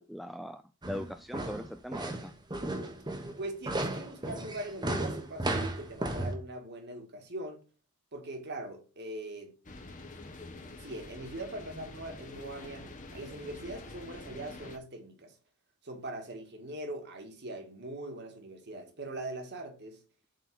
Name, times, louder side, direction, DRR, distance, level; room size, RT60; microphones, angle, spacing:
voice 1, 0.0-2.3, equal, ahead, 0.3 m, -41 dB
sound 1, 0.8-6.3, right 1 dB, 20° right, 1.1 m, -34 dB
voice 2, 3.4-7.6 8.1-9.5 10.5-15.4 15.8-20.0, right 1 dB, 50° right, 1.8 m, -41 dB
sound 2, 9.6-14.8, left 2 dB, 35° left, 1.1 m, -46 dB
7.6 x 4.1 x 6.0 m
head